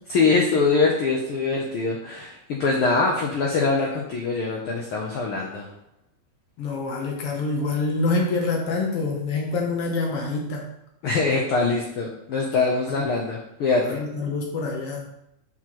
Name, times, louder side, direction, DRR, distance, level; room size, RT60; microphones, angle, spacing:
voice 1, 0.1-5.7 11.0-14.0, left 4 dB, 85° left, -1 dB, 1.2 m, -23 dB
voice 2, 6.6-10.7 13.0-13.1 13.8-15.1, left 3 dB, 65° left, 0 dB, 1.5 m, -26 dB
7.5 x 4.8 x 3.0 m, 0.79 s
omnidirectional pair, 3.4 m